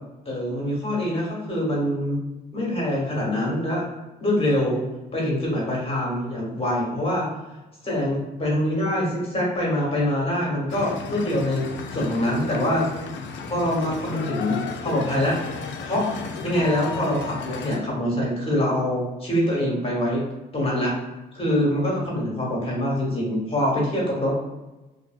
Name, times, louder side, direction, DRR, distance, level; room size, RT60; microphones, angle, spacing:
voice 1, 0.2-2.2 2.5-3.8 4.2-4.8 5.1-7.3 7.8-12.9 13.4-15.4 15.8-16.0 16.4-20.2 20.5-20.9 21.3-24.4, left 1 dB, 30° left, -4 dB, 1.2 m, -24 dB
sound 1, 10.7-17.8, left 5 dB, 70° left, 0.4 m, -34 dB
2.8 x 2.5 x 2.3 m, 1.0 s
cardioid pair, 90°, 20 cm